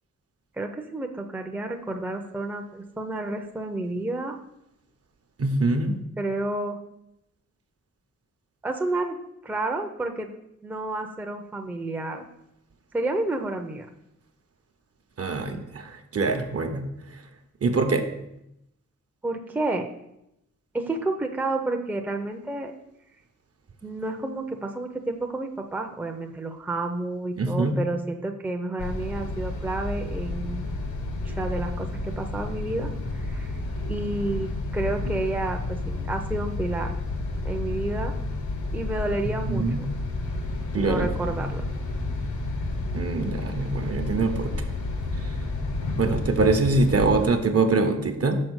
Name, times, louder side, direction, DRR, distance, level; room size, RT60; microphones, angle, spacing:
voice 1, 0.6-4.4 6.2-6.8 8.6-9.2 9.4-10.3 10.6-12.2 12.9-13.9 19.2-19.9 20.7-22.7 23.8-30.7 31.2-33.5 33.9-35.8 36.0-37.0 37.4-38.1 38.7-39.7 40.7-41.6, right 2 dB, 5° right, 3 dB, 0.5 m, -30 dB
voice 2, 5.4-6.0 15.2-16.8 17.1-17.2 17.6-18.0 27.4-27.8 39.3-39.8 40.7-41.5 42.9-44.5 45.1-45.3 46.0-48.4, right 3 dB, 55° right, 6 dB, 0.8 m, -24 dB
sound 1, 28.8-47.3, left 2 dB, 85° left, 1.1 m, -31 dB
6.4 x 4.5 x 6.3 m, 0.83 s
wide cardioid pair, 135°, 29 cm